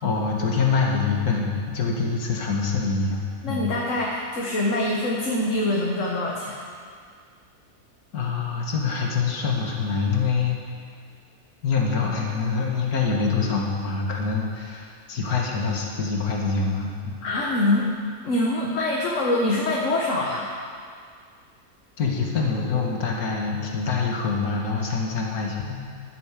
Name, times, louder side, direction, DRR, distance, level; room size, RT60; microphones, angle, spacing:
voice 1, 0.0-3.2 3.5-3.6 8.1-10.6 11.6-17.1 22.0-25.8, left 4 dB, 75° left, -1 dB, 2.2 m, -25 dB
voice 2, 3.4-6.6 17.2-17.9 18.2-20.5, left 1 dB, 55° left, -2 dB, 1.7 m, -24 dB
12.0 x 10.0 x 7.5 m, 2.1 s
omnidirectional pair, 1.6 m